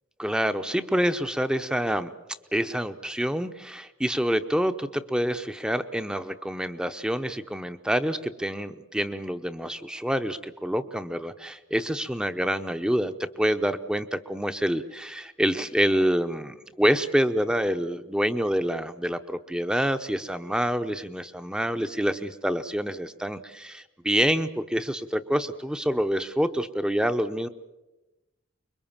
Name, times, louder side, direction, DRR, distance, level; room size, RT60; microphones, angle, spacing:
voice 1, 0.2-2.1 2.5-27.5, equal, 5° right, 10 dB, 0.7 m, -27 dB
25.0 x 22.5 x 7.3 m, 1.0 s
head